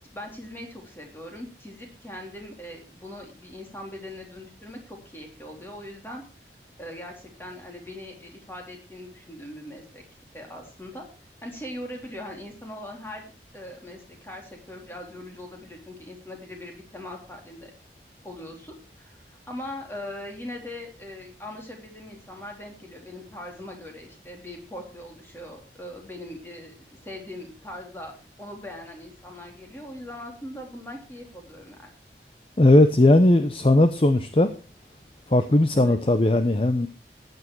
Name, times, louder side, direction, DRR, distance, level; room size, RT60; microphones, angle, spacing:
voice 1, 0.1-6.2 6.8-10.0 10.3-11.1 11.4-13.2 13.5-17.7 18.2-31.9 35.7-36.0, left 1 dB, 15° left, 1 dB, 3.3 m, -40 dB
voice 2, 32.6-34.5 35.3-36.9, left 1 dB, 30° left, 10 dB, 0.7 m, -18 dB
14.5 x 9.4 x 4.6 m, 0.34 s
head